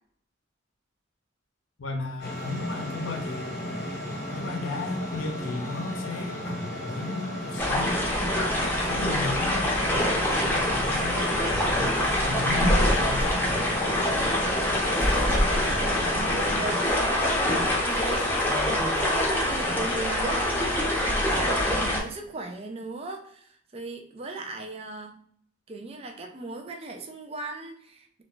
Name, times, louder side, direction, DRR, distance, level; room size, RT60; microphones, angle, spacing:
voice 1, 1.8-3.8 4.3-8.0 8.9-11.9 12.2-13.7, left 3 dB, 85° left, 3 dB, 0.6 m, -34 dB
sound 1, 2.2-16.8, equal, 55° left, 0.9 m, -35 dB
sound 2, 7.6-22.0, left 1 dB, 10° left, 0.6 m, -25 dB
voice 2, 14.9-18.6 19.0-25.2 25.7-28.2, right 3 dB, 30° right, 3 dB, 0.4 m, -38 dB
2.3 x 2.2 x 3.7 m, 0.62 s
head